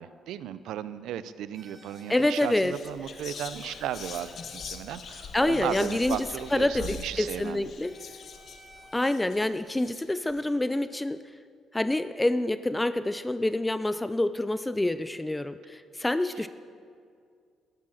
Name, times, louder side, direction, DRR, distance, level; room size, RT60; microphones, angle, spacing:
voice 1, 0.0-7.7 16.4-16.5, right 11 dB, 85° right, 15 dB, 0.5 m, -35 dB
sound 1, 1.5-2.4 3.5-4.6 5.7-6.6 7.8-9.0, equal, 30° right, 3.5 m, -54 dB
Whispering, 1.8-2.0 2.3-10.4, left 5 dB, 55° left, 1.0 m, -43 dB
voice 2, 2.1-2.7 5.3-7.9 8.9-11.2 11.7-16.5, left 1 dB, 10° left, 12 dB, 0.4 m, -27 dB
12.0 x 11.5 x 6.4 m, 2.2 s
cardioid pair, 90°, 0 cm